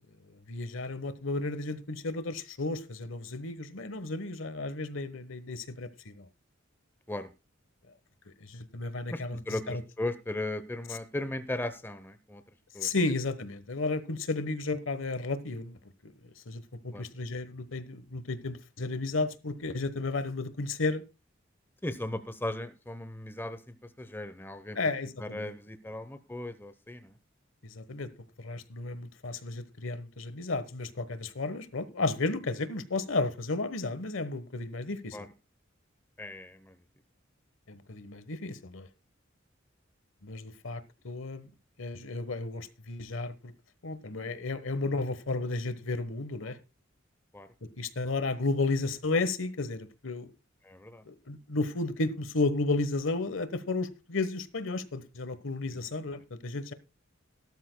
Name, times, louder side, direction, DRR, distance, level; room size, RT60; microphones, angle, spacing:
voice 1, 0.5-6.3 8.4-9.4 9.7-9.8 12.8-15.8 16.0-21.0 24.7-25.5 27.6-28.1 28.4-35.2 37.7-38.9 40.2-41.5 41.8-43.5 43.8-46.6 47.6-50.3 51.1-56.7, left 3 dB, 80° left, 1.2 m, -33 dB
voice 2, 9.1-12.4 12.7-12.9 16.9-17.1 21.8-24.8 25.2-27.2 35.1-35.3 36.2-36.8 44.2-44.4 47.3-47.5 50.6-51.0 55.7-56.0, left 1 dB, 10° left, 0.8 m, -37 dB
17.5 x 12.5 x 2.2 m
head